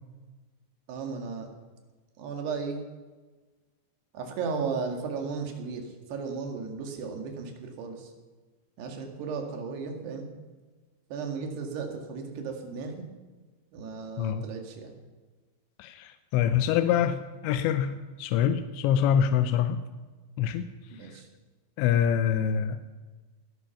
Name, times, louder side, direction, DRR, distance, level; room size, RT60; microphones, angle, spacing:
voice 1, 0.9-1.5 2.2-2.8 4.1-8.1 8.8-10.3 11.1-13.0 13.7-15.0 20.9-21.3, right 5 dB, 70° right, 3 dB, 4.0 m, -35 dB
voice 2, 15.8-19.8 20.4-20.7 21.8-22.8, left 9 dB, 90° left, 10 dB, 3.0 m, -25 dB
20.0 x 12.0 x 5.8 m, 1.3 s
omnidirectional pair, 5.1 m